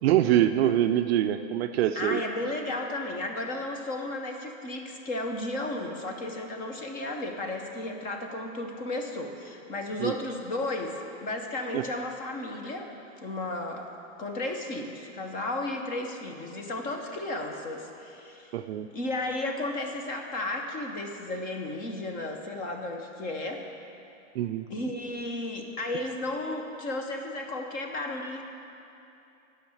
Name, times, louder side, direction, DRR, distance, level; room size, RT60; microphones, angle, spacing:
voice 1, 0.0-2.2 10.0-10.1 11.7-11.8 18.5-18.9 24.4-24.7, right 12 dB, 50° right, 8 dB, 0.5 m, -24 dB
voice 2, 2.0-12.9 13.2-13.9 14.2-18.5 18.9-23.7 24.7-28.4, left 2 dB, 20° left, 3 dB, 0.7 m, -34 dB
10.0 x 5.7 x 7.7 m, 2.8 s
supercardioid pair, 150°, 40 cm